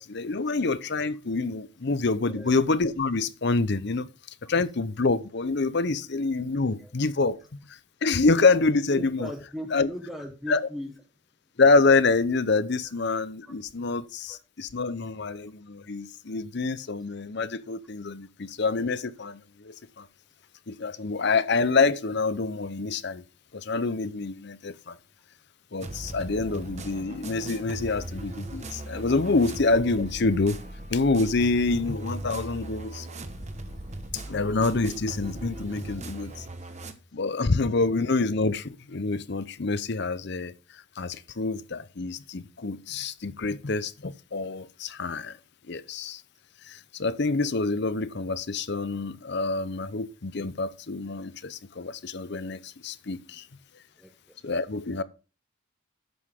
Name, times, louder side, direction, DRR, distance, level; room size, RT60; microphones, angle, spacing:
voice 1, 0.0-4.1 4.5-7.4 7.7-9.3 9.7-9.9 10.5-10.7 11.6-20.1 20.7-23.2 23.5-25.0 25.7-30.6 30.9-33.1 34.1-36.5 37.1-45.4 45.7-46.2 46.6-53.5 54.4-55.0, left 3 dB, 50° left, 0.7 m, -26 dB
voice 2, 8.9-10.9 13.5-13.6 14.3-14.4 15.2-15.4 54.0-54.4, equal, ahead, 0.9 m, -39 dB
sound 1, 25.8-36.9, right 2 dB, 35° right, 1.0 m, -39 dB
11.0 x 7.9 x 3.6 m
head